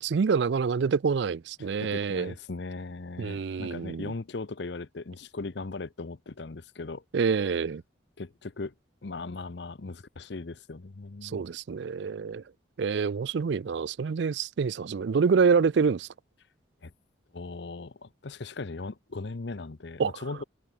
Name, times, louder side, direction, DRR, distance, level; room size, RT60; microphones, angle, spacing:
voice 1, 0.0-2.3 3.2-4.1 7.1-7.8 11.2-12.4 12.8-16.1 20.0-20.1, right 5 dB, 70° right, 0.4 m, -26 dB
voice 2, 1.6-7.0 8.2-8.7 9.0-11.4 16.8-16.9 17.3-20.4, left 3 dB, 65° left, 0.7 m, -38 dB
open air
head